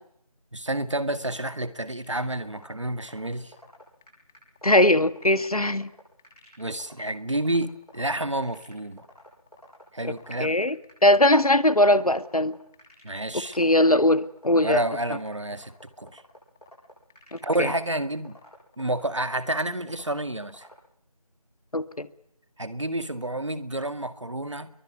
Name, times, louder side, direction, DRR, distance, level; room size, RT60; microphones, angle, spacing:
voice 1, 0.5-3.5 6.6-9.1 9.9-10.6 13.0-13.6 14.6-16.2 17.4-18.4 18.8-20.7 22.6-24.7, right 1 dB, 50° right, 12 dB, 2.0 m, -29 dB
sound 1, 2.0-20.7, left 2 dB, 5° left, 3.2 m, -55 dB
voice 2, 4.6-5.9 7.0-7.1 10.4-10.8 11.0-12.5 13.6-14.8 17.3-17.7 21.7-22.1, left 1 dB, 75° left, 13 dB, 1.9 m, -20 dB
28.0 x 22.5 x 9.4 m, 0.72 s
figure-of-eight pair, 175°, 19 cm